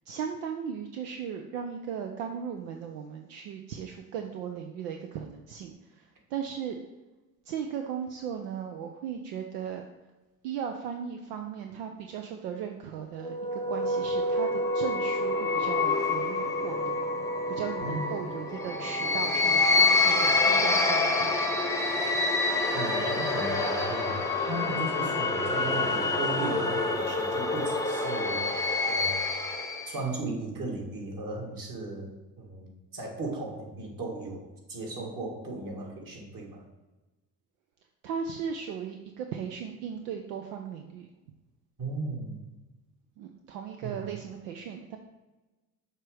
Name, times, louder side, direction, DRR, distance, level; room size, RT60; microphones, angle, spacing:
voice 1, 0.1-6.8 7.4-9.9 10.4-17.1 17.5-21.6 38.0-41.1 43.2-45.0, right 7 dB, 75° right, 4 dB, 0.7 m, -37 dB
sound 1, 13.2-30.0, left 2 dB, 5° left, 0.8 m, -27 dB
voice 2, 17.8-18.3 22.7-29.2 29.9-36.6 41.8-42.4 43.8-44.0, right 2 dB, 45° right, -1 dB, 2.1 m, -36 dB
6.6 x 3.2 x 4.9 m, 1.1 s
hypercardioid pair, 60°, 46 cm